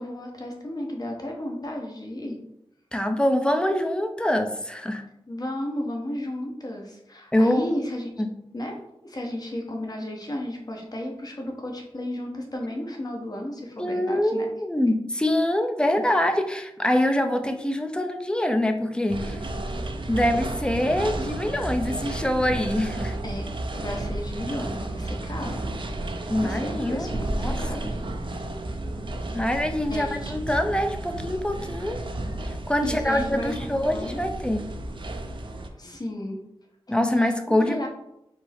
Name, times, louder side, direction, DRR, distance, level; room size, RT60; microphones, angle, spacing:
voice 1, 0.0-2.4 5.3-8.1 8.5-14.5 23.2-25.6 26.0-26.1 26.4-28.0 29.9-30.3 32.8-34.3 35.7-36.4 36.9-37.9, left 1 dB, 40° left, 1 dB, 0.9 m, -34 dB
voice 2, 2.9-5.0 7.3-7.7 8.2-8.3 13.8-19.4 19.7-23.2 26.3-27.1 27.4-27.5 27.8-27.9 29.3-32.0 32.4-34.7 36.9-37.9, left 1 dB, 10° left, 5 dB, 0.5 m, -24 dB
sound 1, 19.1-35.7, right 2 dB, 60° right, 0.5 m, -32 dB
4.5 x 2.0 x 4.3 m, 0.82 s
wide cardioid pair, 60°, 10 cm